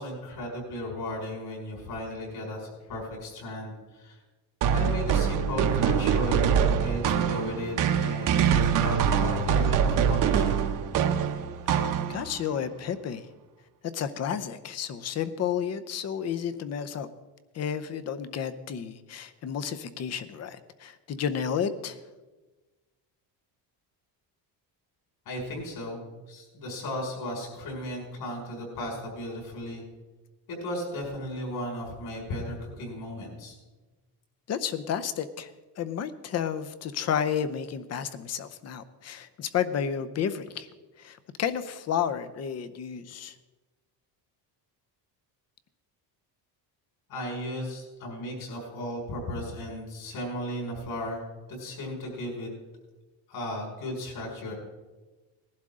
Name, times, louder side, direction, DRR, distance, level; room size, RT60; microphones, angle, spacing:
voice 1, 0.0-4.2 4.7-10.7 25.3-29.8 30.5-33.5 47.1-51.2 51.5-52.5 53.3-54.5, left 1 dB, 60° left, -1 dB, 5.7 m, -35 dB
sound 1, 4.6-12.4, right 7 dB, 50° right, 0.9 m, -24 dB
voice 2, 12.1-13.3 13.9-17.1 17.5-22.0 34.5-40.7 41.0-43.4, left 8 dB, 35° left, 13 dB, 0.7 m, -31 dB
19.5 x 11.5 x 3.7 m, 1.2 s
cardioid pair, 165°, 42 cm